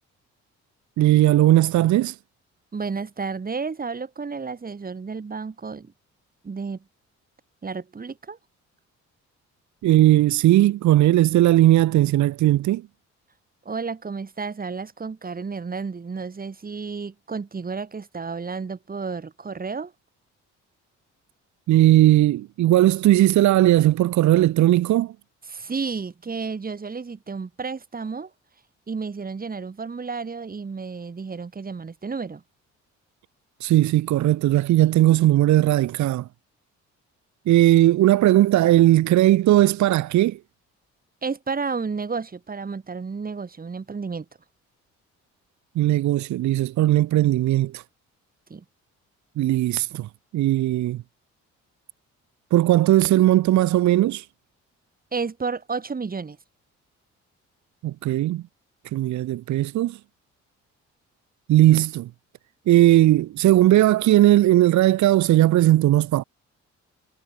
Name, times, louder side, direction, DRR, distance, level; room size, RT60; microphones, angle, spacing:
voice 1, 1.0-2.1 9.8-12.8 21.7-25.1 33.6-36.2 37.5-40.4 45.8-47.8 49.4-50.1 50.3-51.0 52.5-54.2 57.8-58.4 58.9-60.0 61.5-62.1 62.7-66.2, right 14 dB, 70° right, 0.8 m, -18 dB
voice 2, 2.7-5.9 6.4-6.8 7.6-8.4 13.7-19.9 25.5-28.3 28.9-32.4 41.2-44.3 48.5-48.6 55.1-56.4, right 5 dB, 30° right, 2.4 m, -31 dB
cardioid pair, 90°, 30 cm